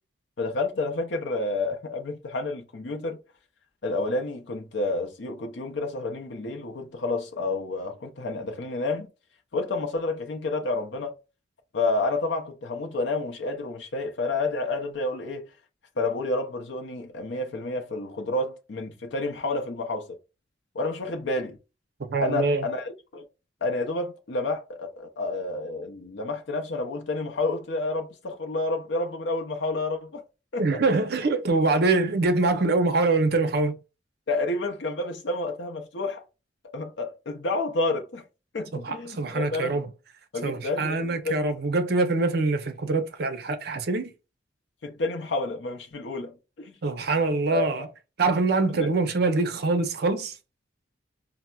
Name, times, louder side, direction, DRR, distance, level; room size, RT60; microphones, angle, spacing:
voice 1, 0.4-3.2 3.8-9.1 9.5-11.1 11.7-15.5 16.0-20.1 20.7-21.6 22.2-23.2 23.6-30.2 30.5-30.8 34.3-36.2 36.7-38.2 38.5-39.8 40.3-41.4 44.8-46.8 47.5-47.9 48.8-48.9, left 2 dB, 65° left, 0.5 m, -30 dB
voice 2, 22.1-22.7 30.6-33.7 38.7-39.9 40.4-44.1 46.8-47.9 48.2-50.4, right 3 dB, 55° right, 0.5 m, -24 dB
4.2 x 2.0 x 2.2 m
head